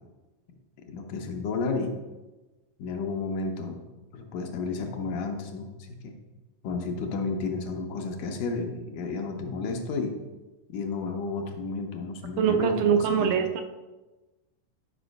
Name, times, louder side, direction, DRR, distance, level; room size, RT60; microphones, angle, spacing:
voice 1, 0.9-2.0 2.8-3.8 4.1-6.1 6.6-10.2 10.7-13.3, left 4 dB, 70° left, 3 dB, 2.4 m, -32 dB
voice 2, 12.4-13.6, right 8 dB, 75° right, 6 dB, 2.2 m, -23 dB
11.0 x 5.5 x 5.3 m, 1.1 s
omnidirectional pair, 4.0 m